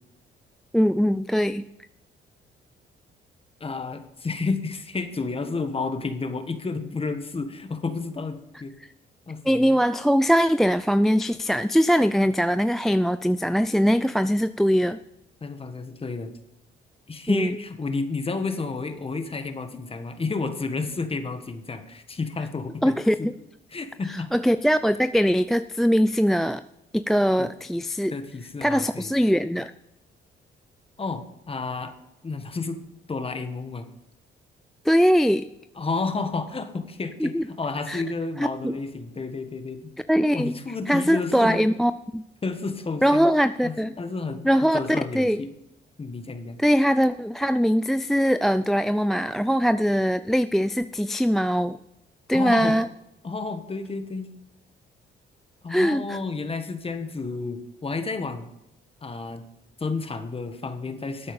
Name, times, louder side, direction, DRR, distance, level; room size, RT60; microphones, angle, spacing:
voice 1, 0.7-1.6 9.5-15.0 17.3-17.5 22.8-23.3 24.1-26.6 26.9-28.1 28.6-29.7 34.9-35.5 37.2-37.5 37.9-38.0 38.4-38.8 40.1-40.6 40.9-42.2 43.0-43.9 44.4-44.8 45.1-45.4 46.6-51.8 52.3-52.9 55.7-56.2, equal, ahead, 13 dB, 0.3 m, -21 dB
voice 2, 3.6-8.7 9.3-9.8 15.4-16.3 17.1-23.3 23.7-24.3 27.4-27.5 28.1-29.1 31.0-31.9 32.2-32.8 33.1-33.9 35.8-39.8 40.3-41.8 42.4-43.3 43.6-44.5 44.7-45.5 46.0-46.6 52.3-52.8 53.2-54.3 55.6-58.5 59.0-59.4 59.8-61.3, left 3 dB, 30° left, 8 dB, 1.5 m, -31 dB
13.0 x 8.6 x 5.4 m, 0.85 s
cardioid pair, 90°, 20 cm